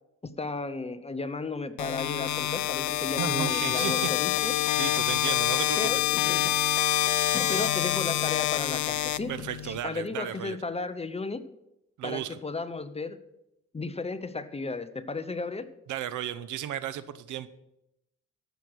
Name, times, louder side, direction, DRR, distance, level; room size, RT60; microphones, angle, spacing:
voice 1, 0.2-4.5 5.8-6.5 7.3-9.3 9.6-11.4 12.0-13.2 13.7-15.7, left 3 dB, 20° left, 12 dB, 0.8 m, -34 dB
sound 1, 1.8-9.8, left 14 dB, 70° left, 0.6 m, -27 dB
voice 2, 3.2-4.4 4.8-6.1 9.3-10.6 12.0-12.4 15.9-17.5, right 10 dB, 75° right, 14 dB, 0.9 m, -34 dB
14.5 x 6.5 x 6.2 m, 0.84 s
cardioid pair, 90°, 30 cm